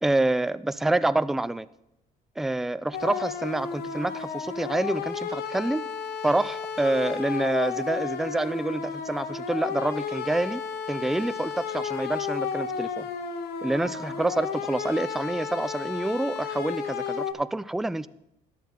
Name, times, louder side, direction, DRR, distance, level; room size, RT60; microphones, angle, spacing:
voice 1, 0.0-1.7 2.4-5.8 6.2-10.6 10.9-13.1 13.6-18.1, right 2 dB, ahead, 15 dB, 0.3 m, -27 dB
sound 1, 2.9-17.3, left 6 dB, 70° left, 1.1 m, -33 dB
13.0 x 10.5 x 3.7 m, 0.85 s
cardioid pair, 110°, 17 cm